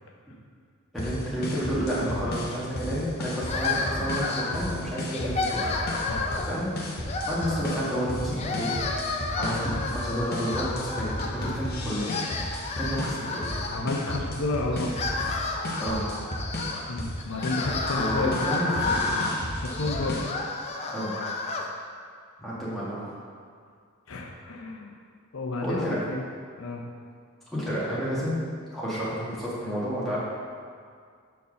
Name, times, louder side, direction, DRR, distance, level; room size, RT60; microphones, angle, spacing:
voice 1, 0.9-5.7 6.5-6.7 7.3-8.8 9.4-12.1 12.8-13.4 15.8-16.0 17.9-19.2 20.9-21.1 22.4-23.1 25.6-26.0 27.5-28.4 28.7-30.2, equal, ahead, -9 dB, 1.7 m, -30 dB
sound 1, 1.0-20.2, left 1 dB, 45° left, 1.0 m, -34 dB
sound 2, 3.5-4.7 5.1-6.6 7.0-8.0 8.3-11.6 11.9-14.2 14.7-21.7, left 3 dB, 30° left, 0.5 m, -31 dB
voice 2, 13.7-14.9 16.9-18.3 19.5-20.2 24.1-24.9 25.3-26.2 26.6-26.8, left 2 dB, 70° left, 0 dB, 0.7 m, -31 dB
5.5 x 4.6 x 6.3 m, 2.1 s
head